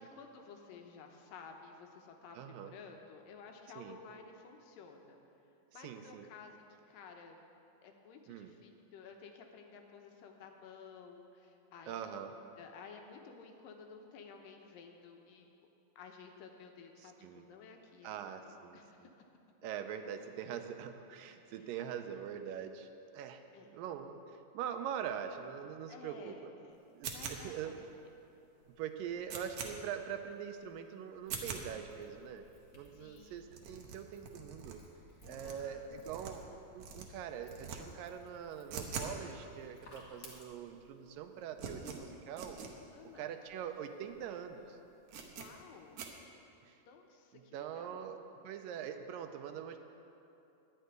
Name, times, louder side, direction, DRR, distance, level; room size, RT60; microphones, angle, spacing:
voice 1, 0.0-5.2 5.7-7.4 7.8-12.3 12.6-15.5 16.0-19.3 21.4-21.8 23.5-23.7 25.9-26.8 27.0-27.8 32.9-33.4 35.2-35.9 36.2-36.3 42.9-43.3 45.3-46.0 46.9-48.1, left 5 dB, 75° left, 3 dB, 2.5 m, -54 dB
voice 2, 2.4-2.7 3.8-4.0 5.8-6.3 8.3-8.5 11.9-12.3 17.0-17.4 18.0-18.8 19.6-23.4 23.7-26.4 26.9-27.7 28.8-32.5 32.7-34.8 35.2-42.6 43.2-44.8 46.7-46.8 47.3-49.8, right 8 dB, 85° right, 7 dB, 2.3 m, -43 dB
sound 1, 27.0-27.7 28.2-28.3 28.6-28.7 29.0-29.7 30.2-30.3 30.6-30.7 31.2-31.6 32.2-32.3 32.4-32.5 32.7-32.9 33.1-33.2 33.5-34.7 35.2-36.5 36.8-37.0 37.4-37.8 38.1-39.2 39.4-39.5 40.2-40.3 40.4-40.8 41.1-42.7 43.1-43.2 43.5-43.6 44.0-44.2 44.5-44.6 45.1-45.5 46.0-46.1, right 6 dB, 65° right, 1.6 m, -44 dB
sound 2, 31.2-40.4, left 2 dB, 35° left, 1.9 m, -61 dB
11.0 x 6.6 x 9.2 m, 2.8 s
omnidirectional pair, 4.0 m